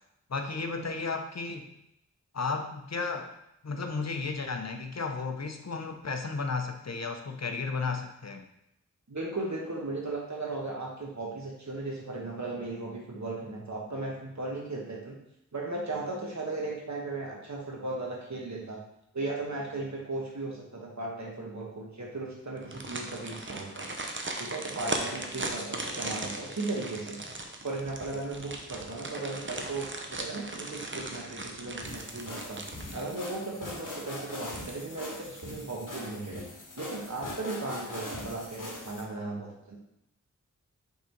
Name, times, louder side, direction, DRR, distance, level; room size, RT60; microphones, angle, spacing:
voice 1, 0.3-1.7 2.3-3.3 3.6-8.4, left 4 dB, 55° left, 5 dB, 0.8 m, -33 dB
voice 2, 9.1-15.1 15.5-18.8 19.1-23.9 24.4-27.2 27.6-36.4 36.8-39.8, right 2 dB, 60° right, -2 dB, 1.3 m, -36 dB
sound 1, 22.6-33.5 33.9-34.0 34.4-35.1 35.4-35.5, right 2 dB, 40° right, 0.8 m, -38 dB
sound 2, 31.8-39.0, left 1 dB, 75° left, 1.3 m, -41 dB
5.6 x 3.7 x 4.5 m, 0.81 s
wide cardioid pair, 50°, 32 cm